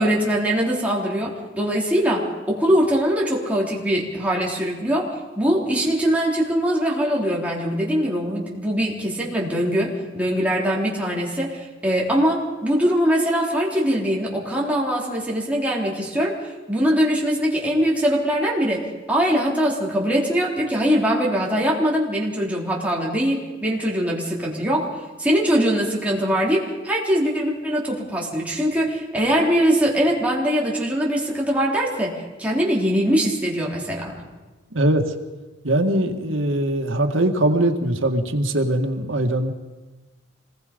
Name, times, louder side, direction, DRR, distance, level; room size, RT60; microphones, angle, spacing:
voice 1, 0.0-24.9 25.2-34.2, equal, 5° right, -4 dB, 3.7 m, -22 dB
voice 2, 34.7-35.0 35.6-39.5, right 1 dB, 90° right, 5 dB, 2.0 m, -21 dB
26.0 x 20.0 x 5.3 m, 1.2 s
head